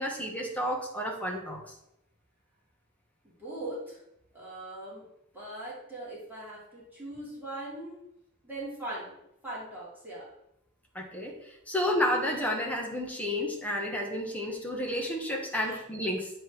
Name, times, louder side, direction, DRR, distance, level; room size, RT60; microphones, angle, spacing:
voice 1, 0.0-1.6 10.9-11.4 11.7-16.3, left 1 dB, 5° left, 0 dB, 1.4 m, -31 dB
voice 2, 3.4-4.0 4.3-5.0 5.3-8.0 8.4-9.2 9.4-10.3 15.7-15.8, right 1 dB, 10° right, -8 dB, 2.5 m, -40 dB
7.9 x 3.3 x 6.1 m, 0.81 s
head